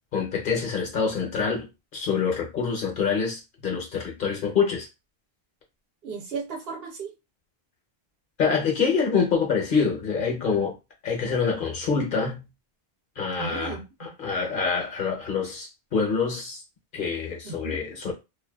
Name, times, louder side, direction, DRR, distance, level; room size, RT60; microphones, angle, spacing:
voice 1, 0.1-1.7 1.9-4.9 8.4-10.7 11.0-12.4 13.2-16.6 16.9-18.1, left 5 dB, 55° left, 0.9 m, -26 dB
voice 2, 6.0-7.1 13.4-14.1 17.4-17.8, right 5 dB, 70° right, 0.9 m, -35 dB
2.5 x 2.3 x 2.3 m
omnidirectional pair, 1.1 m